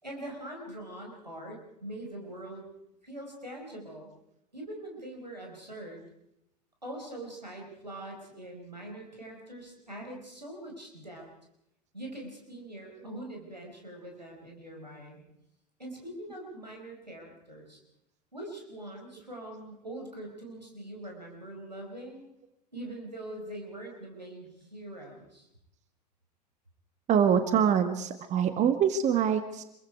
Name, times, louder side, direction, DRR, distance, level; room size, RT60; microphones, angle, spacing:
voice 1, 0.0-2.7 3.0-4.1 4.5-6.0 6.8-11.3 11.9-15.2 15.8-17.8 18.3-22.3 22.7-25.5, right 1 dB, 90° right, 0 dB, 4.9 m, -43 dB
voice 2, 27.1-29.6, right 8 dB, 35° right, 9 dB, 1.7 m, -24 dB
27.0 x 22.5 x 4.7 m, 0.82 s
figure-of-eight pair, 80°, 21 cm